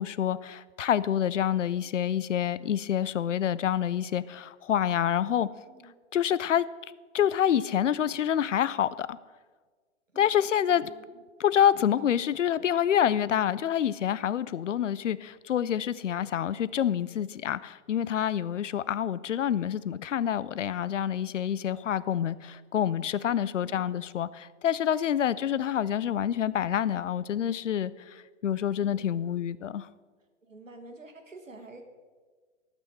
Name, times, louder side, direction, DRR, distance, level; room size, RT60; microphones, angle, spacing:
voice 1, 0.0-5.5 6.1-6.7 7.1-9.2 10.2-10.9 11.4-29.9, left 9 dB, 75° left, 0.5 m, -27 dB
voice 2, 10.7-11.2 23.6-23.9 28.8-29.1 30.4-31.8, right 2 dB, 85° right, 1.6 m, -49 dB
18.5 x 6.2 x 4.3 m
figure-of-eight pair, 115°, 38 cm